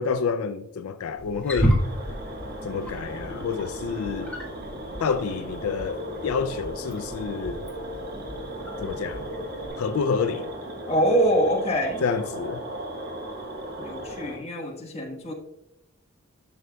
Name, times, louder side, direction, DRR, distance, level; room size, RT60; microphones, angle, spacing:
voice 1, 0.0-1.8 2.6-4.3 5.0-7.6 8.8-9.3 9.8-10.5 12.0-12.6, left 5 dB, 85° left, 0.4 m, -28 dB
Wild animals, 1.2-9.7, equal, 5° left, 1.5 m, -32 dB
sound 1, 1.8-14.4, right 1 dB, 45° right, 1.3 m, -36 dB
voice 2, 10.9-12.0 13.8-15.3, right 1 dB, 30° left, 1.3 m, -24 dB
11.0 x 6.3 x 2.3 m
head